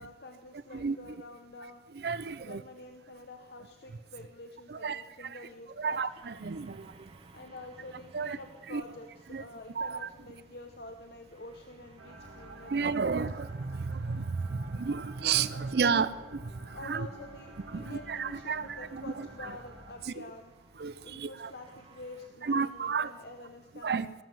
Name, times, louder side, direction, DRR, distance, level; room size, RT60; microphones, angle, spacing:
voice 1, 0.0-1.8 2.4-6.0 7.3-12.7 15.5-16.0 16.7-20.5 21.0-24.2, left 2 dB, 65° left, 5 dB, 0.9 m, -47 dB
voice 2, 0.7-1.1 1.9-2.6 4.7-5.5 5.8-7.1 8.1-8.4 8.7-8.8 9.3-9.4 9.7-10.1 12.5-17.1 17.7-19.6 20.0-20.2 20.8-21.5 22.4-23.1 23.8-24.1, right 5 dB, 60° right, 16 dB, 0.5 m, -32 dB
sound 1, 5.8-22.3, right 2 dB, 30° right, 0.9 m, -59 dB
sound 2, 12.0-19.9, right 1 dB, 90° right, 2.0 m, -50 dB
18.5 x 7.3 x 7.6 m, 1.2 s
head